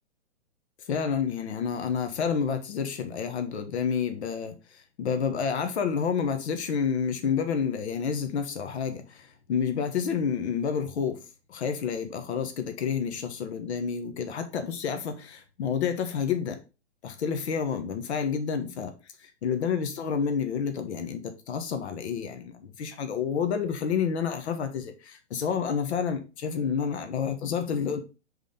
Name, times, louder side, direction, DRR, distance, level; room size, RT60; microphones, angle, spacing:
voice 1, 0.9-11.2 11.5-16.6 17.0-18.9 19.2-28.0, left 7 dB, 65° left, 1.4 m, -29 dB
5.1 x 4.1 x 5.0 m
hypercardioid pair, 130°, 35 cm